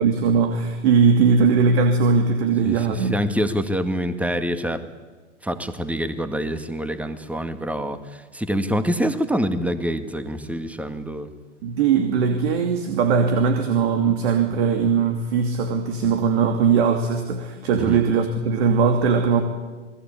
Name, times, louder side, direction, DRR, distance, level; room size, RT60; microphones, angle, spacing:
voice 1, 0.0-3.2 11.6-19.4, right 5 dB, 60° right, 5 dB, 2.8 m, -20 dB
voice 2, 2.7-4.8 5.4-11.3 17.8-18.0, equal, 5° right, 10 dB, 2.0 m, -26 dB
28.5 x 20.5 x 8.7 m, 1.3 s
hypercardioid pair, 100°, 36 cm